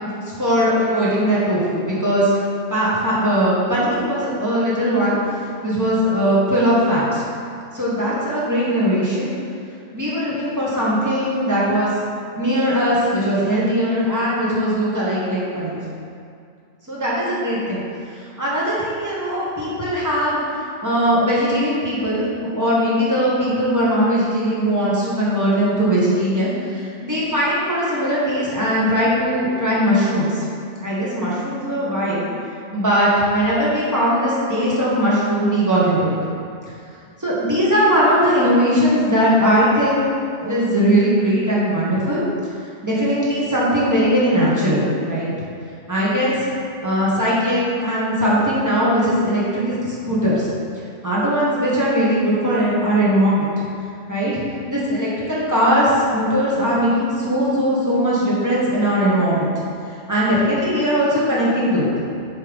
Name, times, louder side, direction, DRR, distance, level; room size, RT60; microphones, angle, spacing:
voice 1, 0.0-2.4 2.7-7.2 7.7-9.3 9.9-12.1 12.4-15.8 16.9-17.8 18.2-20.4 20.8-30.4 30.8-32.3 32.7-36.2 37.2-40.1 40.4-42.2 42.8-45.3 45.9-46.4 46.8-50.5 51.0-53.5 54.1-54.4 54.7-59.5 60.1-61.9, equal, 15° right, -8 dB, 1.4 m, -19 dB
6.9 x 3.4 x 5.2 m, 2.3 s
omnidirectional pair, 1.4 m